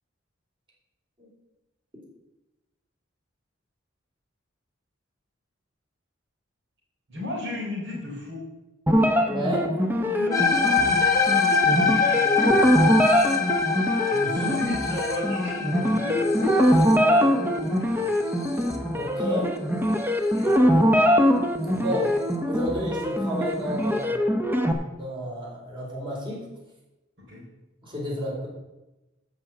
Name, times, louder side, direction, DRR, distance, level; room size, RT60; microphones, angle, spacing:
voice 1, 7.1-8.5 10.0-12.9 14.3-18.0 20.3-20.9 27.3-27.4, left 2 dB, 60° right, -5 dB, 3.9 m, -35 dB
sound 1, 8.9-24.7, equal, 10° right, 0.9 m, -23 dB
voice 2, 9.2-9.7 14.1-14.6 18.9-19.5 21.7-22.1 22.4-24.3 25.0-26.4 27.8-28.5, equal, 25° right, -4 dB, 4.0 m, -31 dB
sound 2, 10.3-18.7, left 5 dB, 15° left, 1.6 m, -25 dB
13.0 x 4.9 x 7.7 m, 1.0 s
head